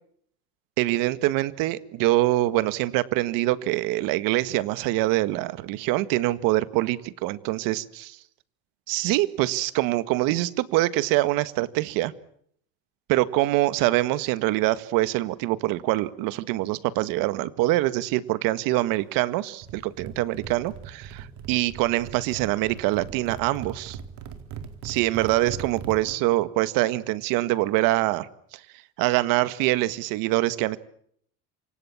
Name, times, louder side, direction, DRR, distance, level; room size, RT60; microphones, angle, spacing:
voice 1, 0.8-8.2 8.9-12.1 13.1-24.0 24.8-28.3 28.5-28.6 29.0-30.8, right 17 dB, 75° right, 14 dB, 1.8 m, -24 dB
sound 1, 19.6-26.1, right 7 dB, 55° right, 4.1 m, -40 dB
28.0 x 25.0 x 7.3 m, 0.67 s
cardioid pair, 140°, 34 cm